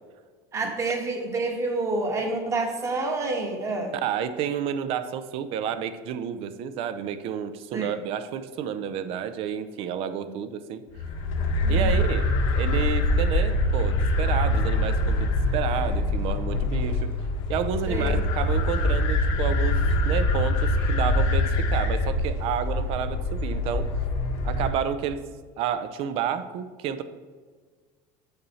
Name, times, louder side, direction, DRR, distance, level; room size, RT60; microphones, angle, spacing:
voice 1, 0.5-3.9 7.7-7.9 10.2-10.3 11.6-11.9 17.9-18.2, right 2 dB, 25° right, 3 dB, 1.2 m, -28 dB
voice 2, 4.0-10.8 11.7-17.1 17.5-23.9 24.4-25.3 25.6-27.0, right 8 dB, 60° right, 12 dB, 0.6 m, -30 dB
sound 1, 11.0-24.7, left 1 dB, 70° left, 1.2 m, -24 dB
7.0 x 6.6 x 4.2 m, 1.5 s
supercardioid pair, 125°, 11 cm